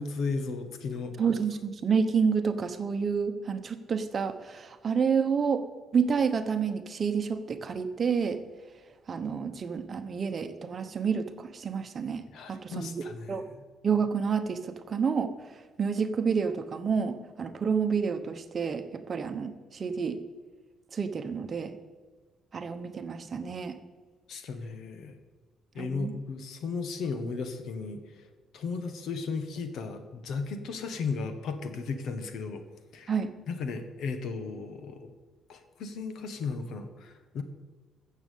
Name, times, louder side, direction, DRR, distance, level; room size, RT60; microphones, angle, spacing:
voice 1, 0.0-1.2 12.3-13.4 24.3-25.2 25.7-28.3 28.5-32.6 32.9-33.2 33.5-35.1 35.5-37.4, left 4 dB, 60° left, 8 dB, 1.4 m, -35 dB
voice 2, 1.2-5.6 5.9-8.4 9.1-12.2 12.5-13.5 13.8-15.3 15.8-20.2 20.9-21.7 22.5-23.8 25.8-26.1 33.1-33.3, right 6 dB, 30° right, 9 dB, 1.1 m, -29 dB
14.0 x 7.5 x 8.4 m, 1.5 s
cardioid pair, 160°, 0 cm